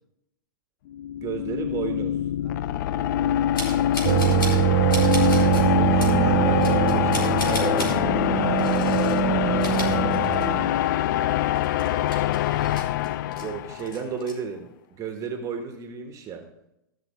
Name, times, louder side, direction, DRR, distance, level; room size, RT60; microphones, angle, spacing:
sound 1, 0.9-14.0, left 12 dB, 60° left, 0.4 m, -24 dB
voice 1, 1.2-2.2 5.3-8.0 13.2-16.5, right 6 dB, 30° right, 4 dB, 1.6 m, -33 dB
voice 2, 2.4-2.8 8.3-9.5 9.9-11.5, right 2 dB, 5° left, 0 dB, 2.1 m, -41 dB
sound 2, 3.5-4.6 4.9-5.6 6.0-6.2 6.6-8.0 8.6-9.2 9.5-10.7 11.0-11.1 11.5-13.4 13.8-14.3, left 1 dB, 90° left, 4.5 m, -35 dB
sound 3, 4.0-10.7, right 16 dB, 45° right, 0.5 m, -23 dB
15.5 x 6.1 x 4.5 m, 0.84 s
hypercardioid pair, 115°, 11 cm